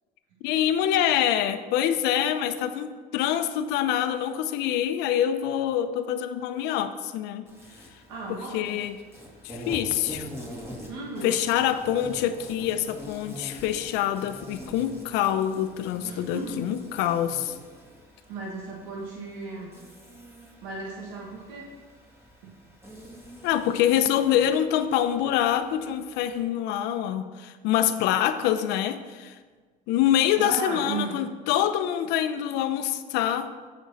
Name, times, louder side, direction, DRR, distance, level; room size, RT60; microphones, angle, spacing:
voice 1, 0.4-7.4 8.3-9.0 9.4-10.3 11.2-17.6 23.4-29.3 29.9-33.5, left 10 dB, 80° left, 10 dB, 0.7 m, -25 dB
Insect, 7.5-26.4, equal, 15° right, 3.0 m, -45 dB
voice 2, 8.1-8.7 10.9-11.4 16.0-16.7 18.3-19.7 20.6-21.7 22.4-22.5 30.4-31.2, right 3 dB, 90° right, -2 dB, 1.8 m, -35 dB
15.5 x 6.3 x 4.1 m, 1.4 s
supercardioid pair, 95°, 17 cm